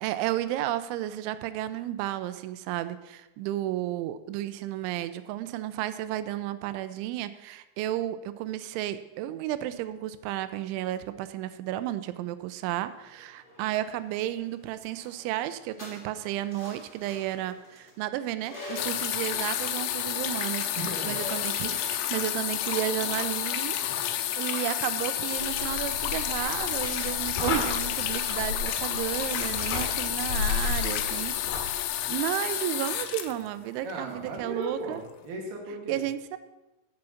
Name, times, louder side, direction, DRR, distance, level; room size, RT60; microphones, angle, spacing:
voice 1, 0.0-20.7 21.1-23.8 24.1-31.7 32.1-35.0 35.9-36.4, right 13 dB, 90° right, 13 dB, 3.0 m, -32 dB
sound 1, 12.9-26.4, left 2 dB, 15° left, 2.1 m, -47 dB
sound 2, 18.8-34.1 35.1-35.2, left 11 dB, 85° left, 3.0 m, -30 dB
voice 2, 20.8-21.3 33.8-36.0, right 2 dB, 70° right, 1 dB, 3.0 m, -36 dB
sound 3, 25.4-32.2, left 5 dB, 60° left, 3.5 m, -34 dB
7.8 x 7.4 x 7.0 m, 1.0 s
omnidirectional pair, 5.3 m